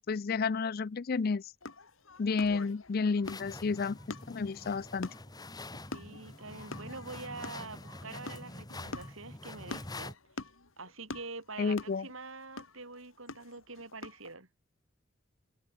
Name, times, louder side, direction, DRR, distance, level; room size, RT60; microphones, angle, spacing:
voice 1, 0.0-1.4 2.2-4.0 4.3-5.1 11.6-12.1, left 4 dB, 45° left, 0.4 m, -31 dB
sound 1, 1.6-14.3, left 3 dB, 80° left, 2.4 m, -47 dB
sound 2, 3.2-10.1, left 2 dB, 20° left, 2.1 m, -46 dB
voice 2, 5.9-10.2 10.8-14.5, right 3 dB, 80° right, 6.7 m, -45 dB
head